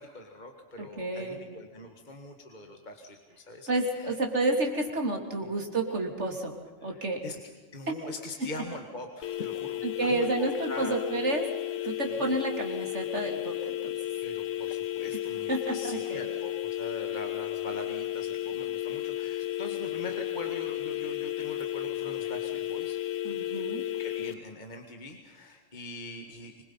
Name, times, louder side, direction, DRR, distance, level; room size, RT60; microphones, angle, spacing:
voice 1, 0.0-4.2 5.4-5.5 6.8-7.4 7.7-11.0 12.0-12.3 14.2-23.0 24.0-26.6, left 2 dB, 40° left, 4 dB, 2.0 m, -43 dB
voice 2, 0.8-1.4 3.7-6.5 6.8-7.2 7.9-8.0 9.8-11.5 11.8-13.5 13.8-13.9 15.5-16.2 23.2-23.8, right 2 dB, 65° right, 3 dB, 3.4 m, -30 dB
sound 1, 9.2-24.3, left 12 dB, 85° left, 1.2 m, -33 dB
25.5 x 21.5 x 5.6 m, 1.4 s
omnidirectional pair, 1.3 m